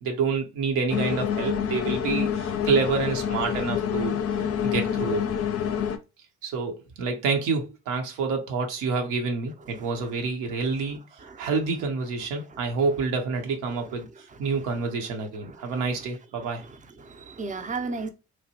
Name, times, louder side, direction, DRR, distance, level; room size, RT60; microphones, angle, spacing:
voice 1, 0.0-5.3 6.4-16.6, right 4 dB, 75° right, 0.8 m, -28 dB
sound 1, 0.9-6.0, left 8 dB, 50° left, 0.5 m, -27 dB
voice 2, 9.8-10.1 11.2-11.5 12.4-12.7 14.5-14.6 15.4-15.8 16.6-18.1, right 4 dB, 25° right, 0.6 m, -36 dB
3.0 x 2.1 x 2.8 m
hypercardioid pair, 45°, 31 cm